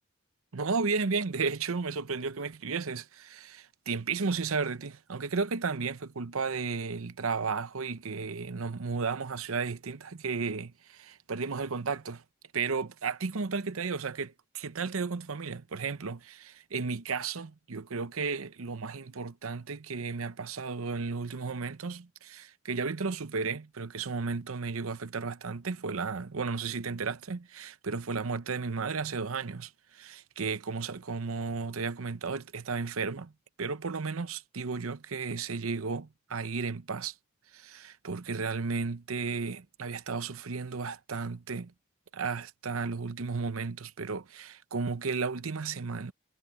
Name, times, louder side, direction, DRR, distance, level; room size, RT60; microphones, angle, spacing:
voice 1, 0.5-12.2 12.5-33.3 33.6-37.1 37.5-41.7 42.1-46.1, right 4 dB, 85° right, 0.8 m, -34 dB
head